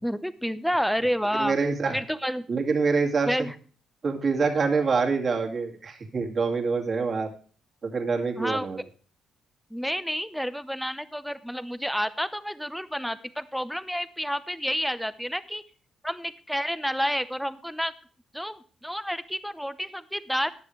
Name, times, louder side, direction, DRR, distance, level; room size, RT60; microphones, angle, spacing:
voice 1, 0.0-1.6 1.9-2.5 3.3-3.5 8.4-8.7 9.7-15.6 16.0-17.9 18.3-20.5, equal, ahead, 13 dB, 0.8 m, -29 dB
voice 2, 1.3-2.0 2.5-3.5 4.0-7.3 7.8-8.8, right 4 dB, 40° right, 2 dB, 2.4 m, -26 dB
14.5 x 9.9 x 3.2 m, 0.41 s
cardioid pair, 90°, 0 cm